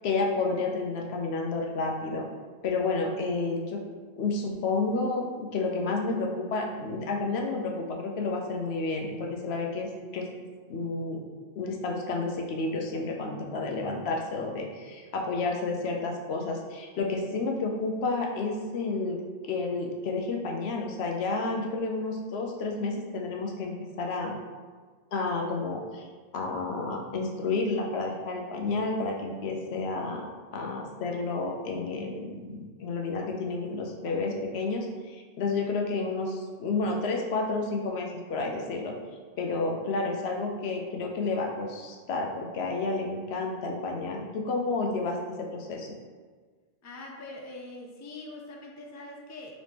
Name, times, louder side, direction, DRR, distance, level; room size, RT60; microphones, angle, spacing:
voice 1, 0.0-2.3 2.6-3.8 4.2-10.3 10.7-11.2 11.6-19.2 19.5-24.3 25.1-26.1 26.3-38.9 39.4-45.9, left 3 dB, 85° left, 1 dB, 0.9 m, -30 dB
voice 2, 46.8-49.5, left 2 dB, 30° left, 0 dB, 0.3 m, -43 dB
3.9 x 3.1 x 3.4 m, 1.5 s
omnidirectional pair, 1.1 m